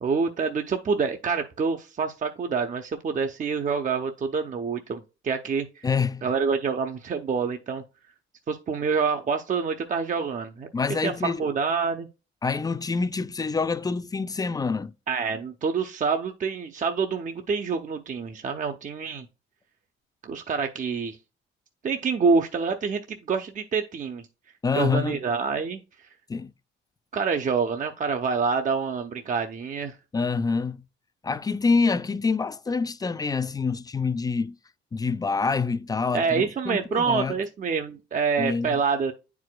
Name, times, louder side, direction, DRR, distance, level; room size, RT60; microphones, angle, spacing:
voice 1, 0.0-5.9 6.2-7.8 8.5-10.7 11.0-12.1 15.1-19.3 20.2-21.2 21.8-24.3 24.7-25.8 27.1-30.0 36.1-39.1, right 5 dB, 40° right, 0.7 m, -27 dB
voice 2, 5.8-6.3 10.7-11.5 12.4-14.9 24.6-25.2 26.3-26.5 30.1-30.8 31.2-34.6 34.9-37.3 38.4-38.8, left 4 dB, 20° left, 0.4 m, -26 dB
9.4 x 4.7 x 2.2 m
cardioid pair, 90°, 20 cm